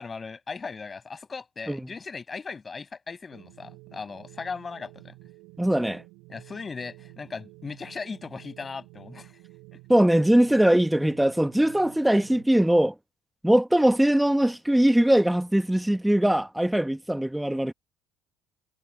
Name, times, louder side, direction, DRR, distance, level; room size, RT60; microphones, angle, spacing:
voice 1, 0.0-5.1 6.3-9.4, left 4 dB, 30° left, 7.1 m, -38 dB
sound 1, 3.3-12.5, right 24 dB, 80° right, 4.6 m, -50 dB
voice 2, 5.6-6.0 9.9-12.9 13.4-17.7, right 1 dB, 5° right, 1.3 m, -21 dB
supercardioid pair, 80°, 0 cm